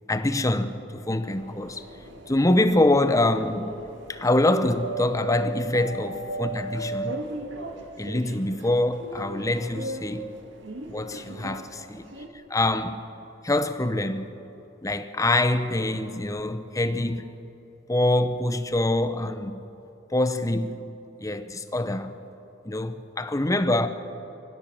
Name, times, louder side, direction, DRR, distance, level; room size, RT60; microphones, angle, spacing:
voice 1, 0.1-1.9 2.3-3.7 4.1-7.2 8.0-10.3 10.9-12.1 12.5-13.0 13.4-14.3 14.8-17.4 17.9-19.6 20.1-20.8 21.2-22.1 22.6-23.9, left 1 dB, 20° left, 0.9 m, -25 dB
sound 1, 1.3-12.3, right 2 dB, 85° right, 2.0 m, -37 dB
24.5 x 15.5 x 7.5 m
head